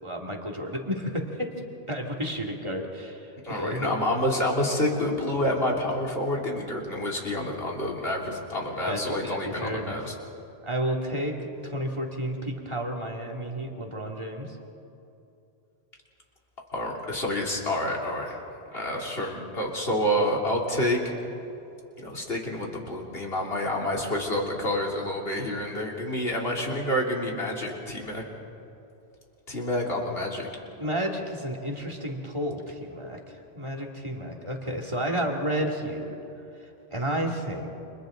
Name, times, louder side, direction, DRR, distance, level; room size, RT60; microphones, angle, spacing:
voice 1, 0.0-1.5 1.9-4.1 8.9-10.0 10.6-14.5 30.8-33.2 33.5-36.1 36.9-37.7, equal, 25° right, 0 dB, 2.6 m, -31 dB
voice 2, 3.4-10.1 16.7-18.3 18.7-21.0 22.0-28.2 29.5-30.5, left 1 dB, 65° left, -2 dB, 3.6 m, -28 dB
29.5 x 27.5 x 4.0 m, 2.8 s
omnidirectional pair, 1.1 m